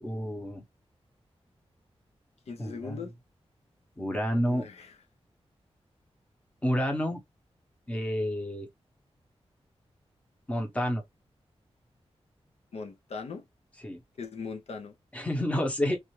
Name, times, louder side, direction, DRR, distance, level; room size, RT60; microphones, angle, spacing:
voice 1, 0.0-0.6 2.6-3.0 4.0-4.7 6.6-7.2 7.9-8.7 10.5-11.0 13.8-14.0 15.1-16.0, equal, 10° left, 0.8 m, -29 dB
voice 2, 2.5-3.1 4.2-5.0 12.7-13.4 14.2-14.9, left 5 dB, 80° left, 0.7 m, -40 dB
3.2 x 2.4 x 3.1 m
wide cardioid pair, 160°, 11 cm